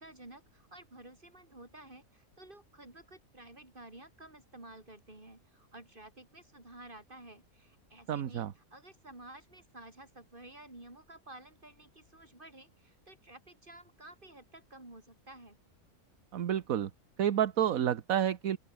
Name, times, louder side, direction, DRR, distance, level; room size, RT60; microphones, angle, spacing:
voice 1, 0.0-15.6, right 1 dB, 35° right, 5.5 m, -52 dB
voice 2, 8.1-8.5 16.3-16.9 17.2-18.6, right 10 dB, 70° right, 1.4 m, -29 dB
open air
omnidirectional pair, 1.5 m